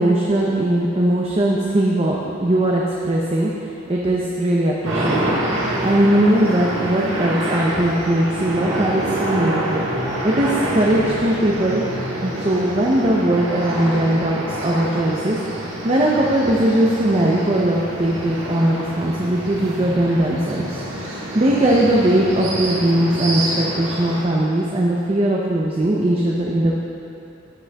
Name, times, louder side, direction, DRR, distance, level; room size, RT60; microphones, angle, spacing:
voice 1, 0.0-9.9 10.2-11.8 12.2-26.8, right 1 dB, 30° right, -3 dB, 0.5 m, -20 dB
sound 1, 4.8-24.2, right 1 dB, 70° right, 1.5 m, -27 dB
15.0 x 6.0 x 2.3 m, 2.7 s
head